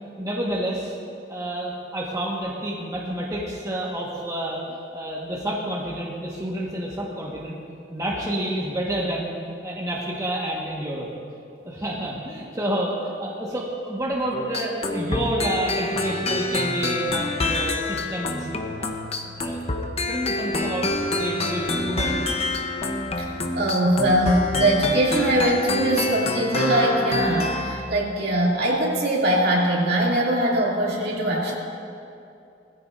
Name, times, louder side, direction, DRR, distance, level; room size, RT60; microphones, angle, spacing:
voice 1, 0.2-0.9 1.3-7.6 7.9-9.4 9.6-11.1 11.6-18.5 18.8-18.9 19.4-22.4, right 1 dB, 20° right, -5 dB, 1.5 m, -29 dB
sound 1, 14.3-27.9, left 2 dB, 35° left, 0.8 m, -27 dB
voice 2, 23.5-31.5, right 1 dB, 60° right, -4 dB, 2.7 m, -21 dB
19.5 x 15.0 x 2.6 m, 2.6 s
head